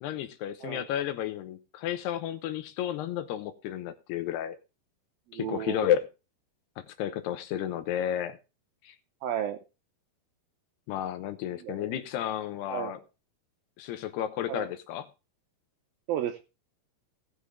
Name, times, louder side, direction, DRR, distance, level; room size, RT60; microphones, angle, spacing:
voice 1, 0.0-4.6 5.3-6.1 6.8-8.4 8.8-9.0 10.9-13.0 13.8-15.1, left 11 dB, 80° left, 2.8 m, -32 dB
voice 2, 5.3-5.9 9.2-9.6 11.6-11.9 12.7-13.0 14.5-14.7 16.1-16.4, right 10 dB, 80° right, 2.2 m, -33 dB
18.0 x 6.6 x 3.4 m
omnidirectional pair, 4.9 m